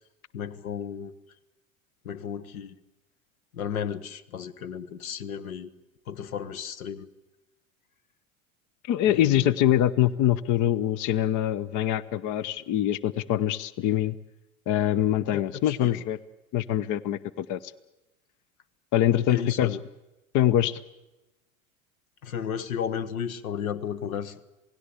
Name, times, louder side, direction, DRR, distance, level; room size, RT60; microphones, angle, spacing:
voice 1, 0.3-1.1 2.0-2.8 3.5-5.7 6.1-7.1 9.1-9.5 15.3-16.0 19.3-19.8 22.2-24.3, left 8 dB, 75° left, 1.3 m, -34 dB
voice 2, 8.8-14.2 14.7-16.2 16.5-17.7 18.9-19.8 20.3-20.8, left 12 dB, 45° left, 0.9 m, -24 dB
28.0 x 18.5 x 8.4 m
hypercardioid pair, 80°, 42 cm